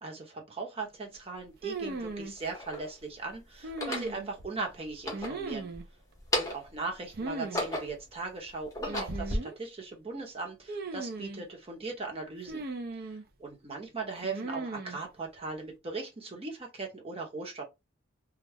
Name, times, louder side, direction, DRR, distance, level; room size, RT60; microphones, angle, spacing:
voice 1, 0.0-5.7 6.3-12.6 13.4-17.6, right 3 dB, 30° right, 0.9 m, -39 dB
sound 1, 1.1-1.2 2.1-2.9 3.6-4.1 4.9-5.8 6.1-6.8 7.2-8.1 8.6-9.4, left 1 dB, 15° left, 0.8 m, -34 dB
sound 2, 1.6-2.3 3.6-4.5 5.1-5.8 7.1-7.6 7.9-8.0 8.9-9.6 10.7-11.4 12.5-13.2 14.2-15.0, right 2 dB, 50° right, 0.5 m, -37 dB
2.4 x 2.1 x 3.3 m
head